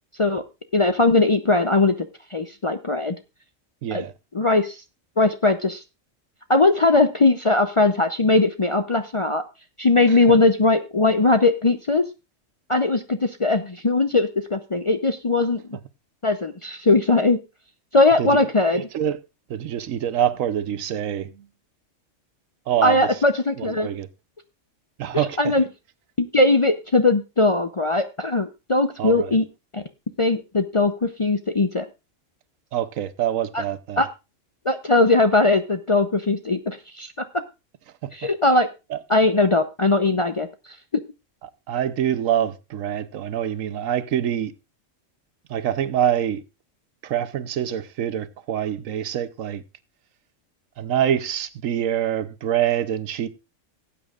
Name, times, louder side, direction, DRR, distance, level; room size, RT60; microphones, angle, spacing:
voice 1, 0.7-1.9 2.3-3.2 3.9-4.0 4.3-4.8 5.2-5.8 6.5-9.4 9.8-12.0 12.7-15.6 16.2-17.4 17.9-18.8 22.8-23.9 25.4-25.6 26.2-29.4 29.7-29.8 30.2-31.9 33.5-33.6 34.0-34.1 34.7-37.1 38.1-38.7 39.1-40.5, left 2 dB, 40° left, 0.4 m, -19 dB
voice 2, 3.8-4.1 10.1-10.2 18.2-18.4 18.7-19.2 19.5-21.5 22.7-23.1 23.6-24.1 25.0-25.5 29.0-29.3 32.7-34.0 38.0-38.3 38.9-39.0 41.7-44.5 45.5-46.4 47.0-49.6 50.8-53.3, right 10 dB, 90° right, 1.1 m, -25 dB
17.5 x 8.5 x 2.4 m
omnidirectional pair, 1.3 m